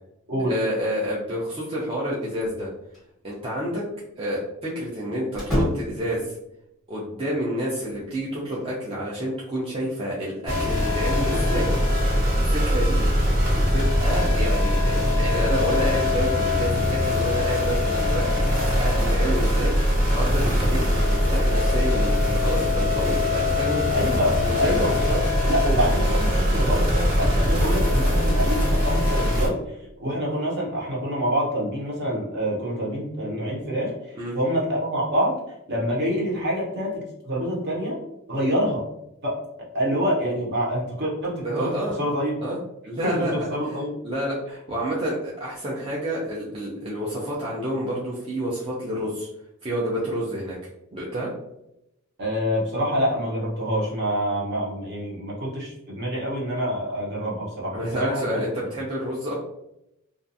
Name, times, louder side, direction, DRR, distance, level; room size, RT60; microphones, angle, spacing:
voice 1, 0.4-2.7 3.2-3.8 4.2-6.3 6.9-11.7 12.4-13.0 13.5-23.8 24.4-25.0 34.1-34.4 41.4-42.0 42.4-42.6 42.9-43.8 44.0-49.3 49.6-50.5 50.9-51.3 57.7-59.4, equal, 25° right, -6 dB, 0.4 m, -29 dB
sound 1, 2.4-3.1 3.3-3.4 5.3-6.2 7.8-8.7, equal, ahead, 0.8 m, -29 dB
sound 2, 10.5-29.5, left 1 dB, 85° right, 1.3 m, -22 dB
voice 2, 23.9-29.6 30.0-33.9 34.3-35.4 35.7-38.0 38.3-38.8 39.2-39.4 39.7-41.7 42.0-42.3 43.0-44.0 52.2-58.4, equal, 50° right, -4 dB, 0.9 m, -26 dB
2.4 x 2.3 x 2.6 m, 0.83 s
head